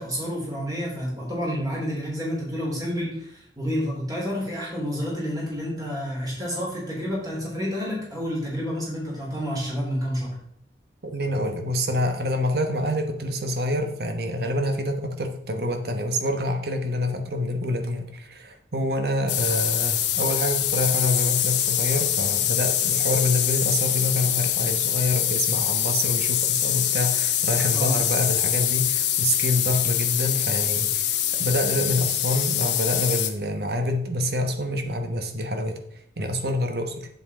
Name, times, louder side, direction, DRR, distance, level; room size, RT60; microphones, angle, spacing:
voice 1, 0.0-10.3 27.7-28.0, equal, 20° right, -4 dB, 3.7 m, -29 dB
voice 2, 11.0-31.0 31.3-35.8 36.2-37.1, left 1 dB, 65° right, 6 dB, 1.1 m, -27 dB
sound 1, 19.3-33.3, left 10 dB, 85° left, 1.0 m, -24 dB
8.0 x 8.0 x 3.7 m, 0.72 s
head